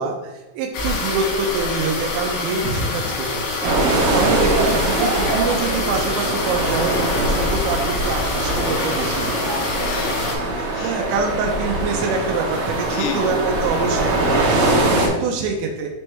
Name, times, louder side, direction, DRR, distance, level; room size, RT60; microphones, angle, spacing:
voice 1, 0.0-3.4 4.1-9.4 10.8-15.9, right 4 dB, 90° right, 2 dB, 2.5 m, -25 dB
sound 1, 0.7-10.3, left 3 dB, 65° left, 3.0 m, -26 dB
sound 2, 2.6-6.6, equal, 50° right, 1.5 m, -35 dB
sound 3, 3.6-15.1, right 2 dB, 70° right, 2.2 m, -22 dB
voice 2, 9.7-11.0 12.9-13.3 15.1-15.4, left 7 dB, 85° left, 2 dB, 3.4 m, -32 dB
7.2 x 4.5 x 3.2 m, 1.1 s
omnidirectional pair, 5.6 m